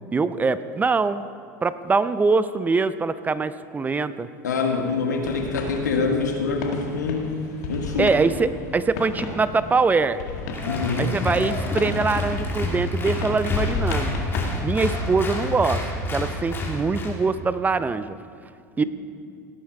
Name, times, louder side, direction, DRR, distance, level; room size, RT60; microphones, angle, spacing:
voice 1, 0.1-1.3 1.6-4.3 8.0-10.2 11.0-14.1 14.6-15.8 16.1-18.2 18.8-18.9, right 4 dB, 20° right, 14 dB, 0.5 m, -23 dB
voice 2, 4.4-7.3 7.7-8.1 10.6-11.2 18.8-18.9, left 4 dB, 90° left, 2 dB, 1.9 m, -25 dB
sound 1, 5.2-14.6, left 3 dB, 70° left, 1.9 m, -34 dB
Applause, 10.5-17.2, left 2 dB, 25° left, 3.1 m, -28 dB
17.5 x 9.5 x 4.8 m, 2.3 s
hypercardioid pair, 90°, 9 cm